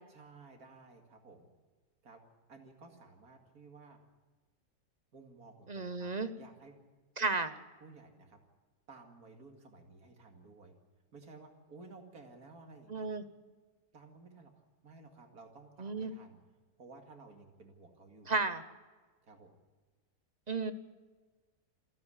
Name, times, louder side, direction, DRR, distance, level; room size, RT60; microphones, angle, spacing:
voice 1, 0.1-1.5 2.0-2.2 2.5-4.0 5.1-6.7 7.8-8.4 8.9-10.7 11.1-13.1 13.9-14.5 14.8-16.4 16.8-18.3 19.2-19.6, right 3 dB, 75° right, 3 dB, 2.8 m, -55 dB
voice 2, 5.7-6.3 7.2-7.5 12.9-13.2 15.8-16.1 18.3-18.6 20.5-20.7, right 4 dB, 35° right, 11 dB, 0.8 m, -33 dB
27.5 x 9.6 x 9.9 m, 1.3 s
omnidirectional pair, 1.6 m